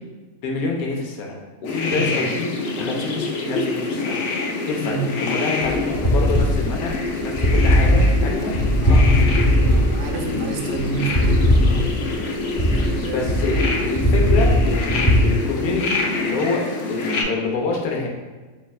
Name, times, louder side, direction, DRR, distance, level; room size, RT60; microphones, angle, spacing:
voice 1, 0.4-2.5 2.8-4.2 4.7-7.0 7.2-8.6 8.9-9.0 10.3-10.7 13.0-13.5 13.8-18.1, left 4 dB, 85° left, 0 dB, 1.2 m, -27 dB
sound 1, 1.6-17.2, left 3 dB, 65° left, 0.8 m, -26 dB
sound 2, 5.6-15.2, equal, 25° left, 0.6 m, -18 dB
voice 2, 8.8-9.2 9.6-11.9 12.7-13.2, right 4 dB, 65° right, 2 dB, 0.7 m, -28 dB
4.1 x 3.2 x 2.3 m, 1.3 s
omnidirectional pair, 1.5 m